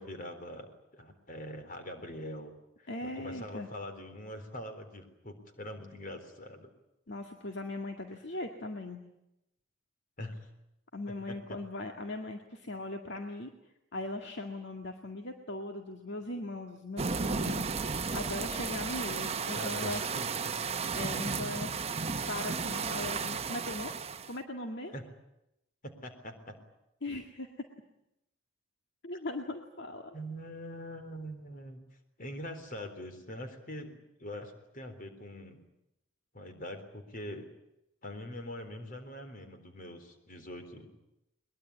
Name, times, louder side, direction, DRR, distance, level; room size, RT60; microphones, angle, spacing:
voice 1, 0.0-6.7 10.2-10.5 11.1-11.6 13.2-13.3 19.5-20.5 24.9-25.0 25.8-26.6 30.1-31.8 32.2-35.6 36.3-37.5 38.0-40.9, equal, 45° left, 7 dB, 3.9 m, -43 dB
voice 2, 2.9-3.7 7.1-9.0 10.9-13.5 13.9-17.7 18.1-20.0 20.9-21.7 22.3-23.9 24.3-25.0 27.0-27.7 29.0-30.1, left 2 dB, 60° left, 4 dB, 2.0 m, -39 dB
sound 1, 17.0-24.3, right 5 dB, 30° right, 0.9 m, -34 dB
22.5 x 21.5 x 9.9 m, 0.85 s
head